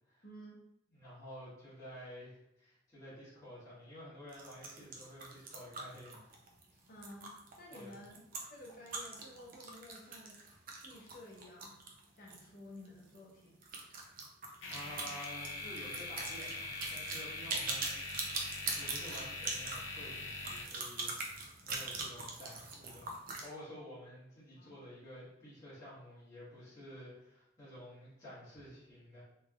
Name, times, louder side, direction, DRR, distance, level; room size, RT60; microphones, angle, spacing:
voice 1, 0.2-0.6 6.9-7.3 7.6-8.1 8.5-10.4 10.8-11.7 12.1-13.6 24.6-24.8, left 1 dB, 50° left, -2 dB, 0.8 m, -52 dB
voice 2, 0.9-6.3 6.7-6.9 7.7-8.0 13.8-14.2 14.7-18.0 18.7-23.1 23.4-29.2, equal, 20° left, -12 dB, 1.4 m, -51 dB
sound 1, 4.3-12.5 12.8-12.9 13.1-13.2 13.6-23.5, right 3 dB, 45° right, 0.5 m, -42 dB
sound 2, 14.6-21.4, left 3 dB, 85° left, 0.6 m, -43 dB
3.3 x 3.1 x 2.4 m, 0.80 s
head